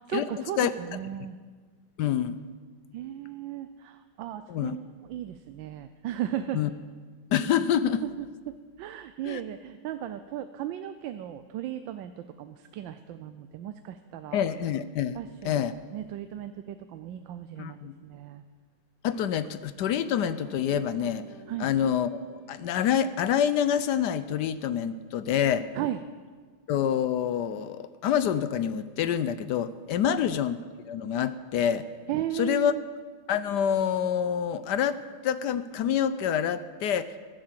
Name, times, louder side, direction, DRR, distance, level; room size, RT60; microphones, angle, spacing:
voice 1, 0.0-1.4 2.9-6.6 8.0-14.4 15.2-15.6 15.9-18.4 21.5-21.7 25.7-26.0 30.1-30.2 32.1-32.8, right 11 dB, 75° right, 10 dB, 1.3 m, -36 dB
voice 2, 2.0-2.4 4.5-4.8 6.5-6.7 7.3-8.0 9.2-9.4 14.3-15.7 17.6-17.9 19.0-21.2 21.6-25.7 26.7-30.6 30.9-31.9 32.3-32.7 33.3-37.1, left 9 dB, 70° left, 14 dB, 1.1 m, -27 dB
sound 1, 20.2-24.8, right 2 dB, 30° right, 3.4 m, -53 dB
14.5 x 11.5 x 7.5 m, 1.5 s
omnidirectional pair, 2.1 m